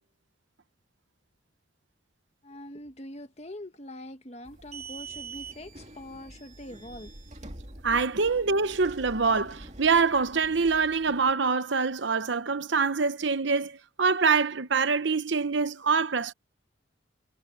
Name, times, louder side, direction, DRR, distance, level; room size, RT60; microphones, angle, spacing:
voice 1, 2.4-7.1, left 1 dB, 35° left, 1.5 m, -43 dB
sound 1, 4.4-11.3, right 3 dB, 35° right, 2.7 m, -45 dB
voice 2, 7.8-16.3, right 4 dB, 70° right, 0.9 m, -25 dB
head